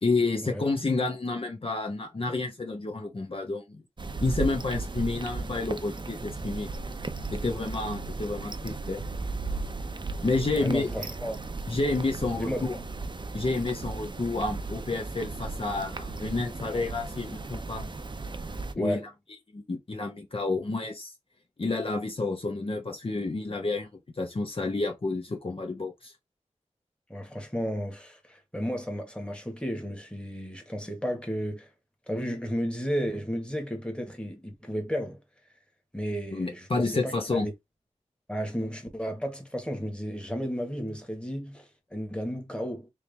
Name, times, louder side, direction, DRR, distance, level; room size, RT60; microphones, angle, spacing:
voice 1, 0.0-3.8 4.2-6.7 7.3-9.0 10.2-10.9 11.7-12.7 13.3-17.9 18.7-19.0 19.5-21.1 21.6-23.9 24.1-26.1 36.3-37.5, left 3 dB, 45° left, 1.0 m, -30 dB
sound 1, 4.0-18.7, right 3 dB, 40° right, 0.7 m, -36 dB
voice 2, 10.6-11.4 12.3-12.8 18.7-19.1 27.1-31.7 32.1-35.2 35.9-37.5 38.3-42.9, equal, 10° left, 1.6 m, -33 dB
3.6 x 3.1 x 3.3 m
wide cardioid pair, 65°, 12 cm